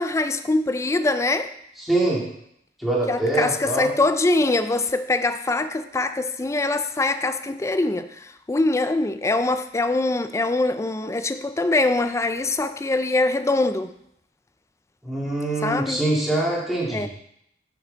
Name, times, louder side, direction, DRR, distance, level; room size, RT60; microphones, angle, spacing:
voice 1, 0.0-1.5 3.1-13.9 15.6-16.0 16.9-17.1, left 2 dB, 15° left, 0.3 m, -23 dB
voice 2, 1.9-2.2 2.8-3.9 15.0-17.1, right 2 dB, ahead, 2.1 m, -24 dB
7.7 x 5.9 x 3.9 m
head